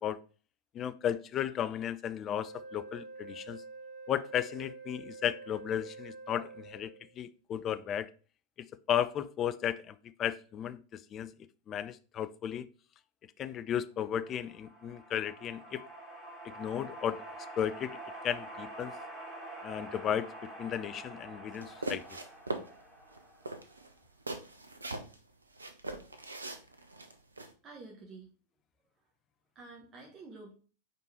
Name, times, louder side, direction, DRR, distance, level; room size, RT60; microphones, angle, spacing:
voice 1, 0.7-3.6 4.1-8.1 8.9-11.3 11.7-12.7 13.4-15.8 16.4-17.2 17.6-18.0 18.2-18.9 19.6-22.2, left 9 dB, 30° left, 0.4 m, -34 dB
Wind instrument woodwind instrument, 2.4-7.1, right 3 dB, 60° right, 2.2 m, -47 dB
sound 1, 14.2-23.7, right 1 dB, ahead, 2.8 m, -47 dB
sound 2, 21.5-22.7 23.1-23.2 23.4-25.2 25.6-27.5, right 2 dB, 80° right, 0.7 m, -40 dB
voice 2, 27.6-28.3 29.5-30.5, right 3 dB, 25° right, 1.5 m, -49 dB
5.2 x 4.6 x 4.4 m
figure-of-eight pair, 90°, 0 cm